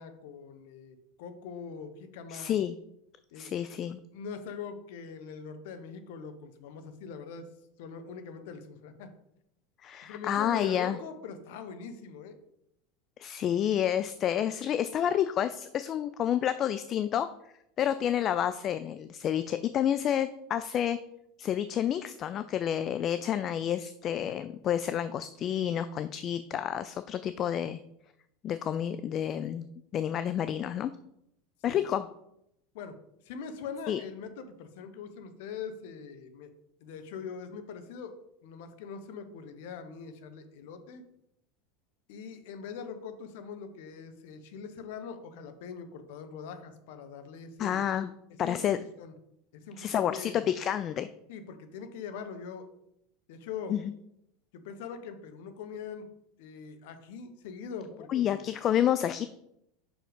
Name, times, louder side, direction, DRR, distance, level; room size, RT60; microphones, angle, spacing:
voice 1, 0.0-2.6 3.3-3.5 4.1-7.5 7.8-9.1 10.0-12.4 31.7-31.9 32.7-33.0 33.2-36.5 36.8-38.1 38.4-41.0 42.1-47.8 48.4-49.1 49.5-50.5 51.3-52.7 53.3-53.8 54.5-56.1 56.4-58.5, left 6 dB, 65° left, 8 dB, 1.0 m, -42 dB
voice 2, 2.3-2.8 3.4-4.0 9.8-11.0 13.2-17.3 17.8-21.0 21.4-27.8 28.4-30.9 31.6-32.1 33.9-34.0 47.6-48.1 48.4-48.8 49.8-51.1 53.7-53.8 58.1-59.3, left 10 dB, 40° left, 12 dB, 0.3 m, -29 dB
5.7 x 5.0 x 5.1 m, 0.79 s
hypercardioid pair, 85°, 0 cm